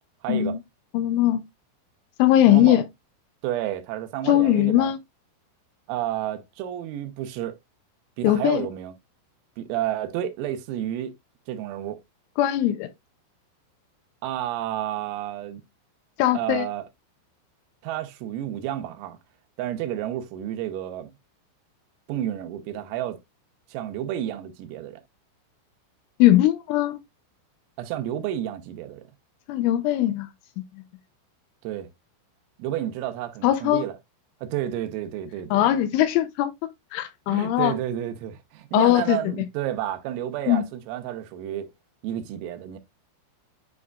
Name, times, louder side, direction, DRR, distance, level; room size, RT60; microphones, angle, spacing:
voice 1, 0.2-0.6 2.5-2.8 3.4-4.9 5.9-7.6 8.2-8.9 9.6-11.1 11.5-12.0 14.2-15.6 16.4-16.9 17.8-19.2 19.6-21.1 22.1-23.2 23.7-25.0 27.8-29.1 31.6-31.9 32.6-34.0 34.4-35.7 37.3-41.7 42.0-42.8, right 12 dB, 85° right, 3.5 m, -31 dB
voice 2, 0.9-1.4 2.2-2.8 4.3-5.0 8.2-8.7 12.4-12.9 16.2-16.7 26.2-27.0 29.5-30.3 30.6-30.7 33.4-33.8 35.5-36.5 36.9-37.8 38.7-39.2 40.5-40.6, left 13 dB, 80° left, 2.8 m, -20 dB
9.2 x 4.8 x 2.3 m
omnidirectional pair, 6.0 m